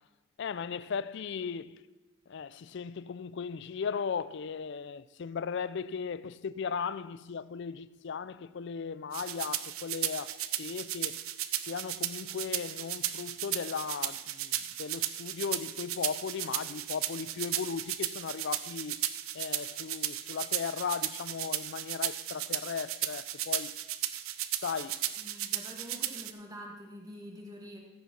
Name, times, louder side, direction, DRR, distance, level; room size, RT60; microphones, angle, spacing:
voice 1, 0.4-1.8 2.3-11.2 11.7-19.0 19.3-23.7 24.6-25.1, left 6 dB, 55° left, 0.4 m, -37 dB
sound 1, 9.1-26.3, right 13 dB, 75° right, 0.7 m, -35 dB
voice 2, 25.2-27.8, equal, 15° right, 1.6 m, -46 dB
13.5 x 8.3 x 5.9 m
head